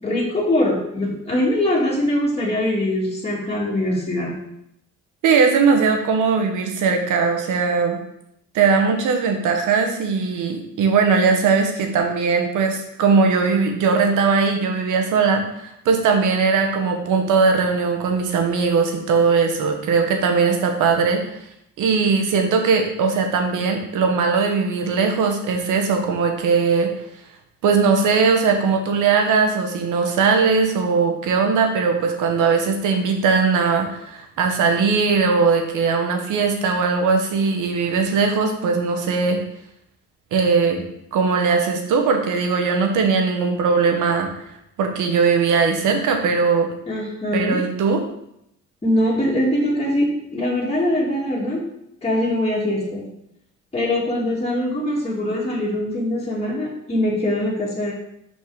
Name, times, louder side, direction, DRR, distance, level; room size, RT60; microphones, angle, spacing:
voice 1, 0.0-4.4 46.9-47.6 48.8-51.6 52.0-53.0 53.7-57.9, left 1 dB, 20° left, -5 dB, 2.0 m, -22 dB
voice 2, 5.2-8.0 8.5-21.2 21.8-26.9 27.6-39.4 40.3-40.8 41.1-44.3 44.8-46.7 47.3-48.0, right 5 dB, 85° right, 4 dB, 1.2 m, -19 dB
5.5 x 4.3 x 4.7 m, 0.78 s
cardioid pair, 90°, 30 cm